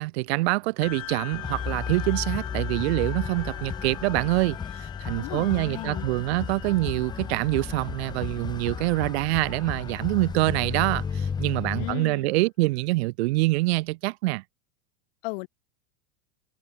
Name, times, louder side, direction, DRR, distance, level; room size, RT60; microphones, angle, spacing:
voice 1, 0.0-14.4, right 22 dB, 50° right, 0.6 m, -25 dB
sound 1, 0.8-11.7, left 16 dB, 65° left, 4.3 m, -43 dB
Wind instrument woodwind instrument, 1.1-5.2, right 6 dB, 15° right, 4.6 m, -52 dB
sound 2, 1.3-11.9, left 6 dB, 10° left, 1.0 m, -34 dB
voice 2, 5.2-6.1 11.7-12.3 15.2-15.5, left 29 dB, 45° left, 3.3 m, -35 dB
supercardioid pair, 160°, 42 cm